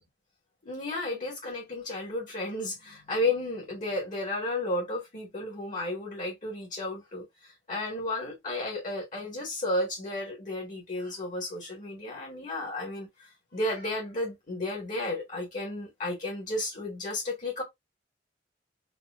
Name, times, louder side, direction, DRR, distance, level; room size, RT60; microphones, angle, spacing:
voice 1, 0.6-7.2 7.7-13.1 13.5-17.6, left 2 dB, 45° left, 1.7 m, -33 dB
4.2 x 2.6 x 2.4 m
head